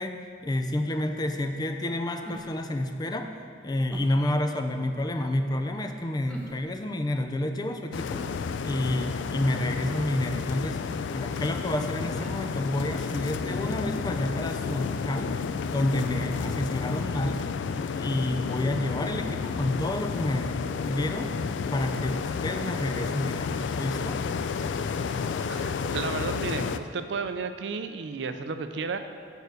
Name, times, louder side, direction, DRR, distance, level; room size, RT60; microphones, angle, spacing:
voice 1, 0.0-3.4 3.6-8.2 8.6-10.8 11.1-15.3 15.7-17.5 18.0-21.3 21.7-24.2, left 1 dB, 25° left, 6 dB, 0.4 m, -29 dB
sound 1, 2.2-2.7 3.9-4.3 6.3-6.8 8.1-8.9 10.3-10.6 12.1-12.4 13.4-14.4 14.7-14.8, equal, 5° left, 0.8 m, -44 dB
sound 2, 7.9-26.8, left 5 dB, 85° left, 0.3 m, -31 dB
voice 2, 25.4-29.0, right 4 dB, 70° right, 9 dB, 0.5 m, -33 dB
6.8 x 4.7 x 6.5 m, 2.2 s
head